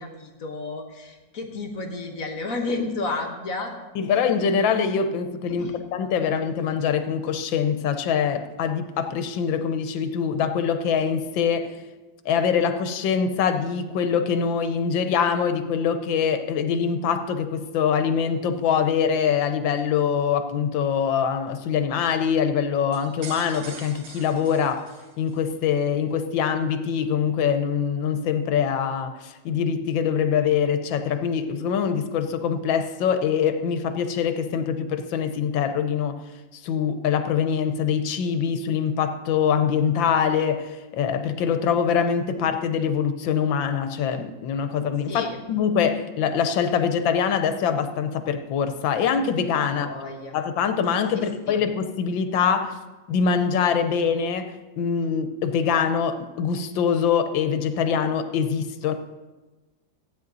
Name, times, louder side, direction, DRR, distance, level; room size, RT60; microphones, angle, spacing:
voice 1, 0.0-3.7 5.6-5.8 45.1-45.4 49.6-50.4 51.1-51.6, left 3 dB, 50° left, 3 dB, 1.5 m, -32 dB
voice 2, 3.9-11.7 12.2-24.9 25.2-36.2 36.5-49.9 50.3-52.8 53.1-58.9, left 7 dB, 80° left, 8 dB, 1.6 m, -24 dB
sound 1, 22.9-25.5, right 5 dB, 75° right, 1.9 m, -43 dB
15.0 x 9.4 x 4.0 m, 1.2 s
omnidirectional pair, 2.1 m